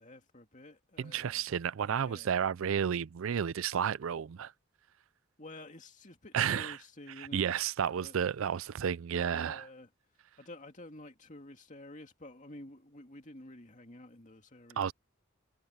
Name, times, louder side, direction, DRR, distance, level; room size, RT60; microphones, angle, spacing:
voice 1, 0.0-1.5 2.0-2.3 5.4-7.5 8.0-8.3 9.3-9.9 10.4-14.9, left 1 dB, 35° left, 2.5 m, -50 dB
voice 2, 1.0-4.5 6.3-6.8 7.3-9.6 14.8-14.9, right 8 dB, 70° right, 0.4 m, -31 dB
head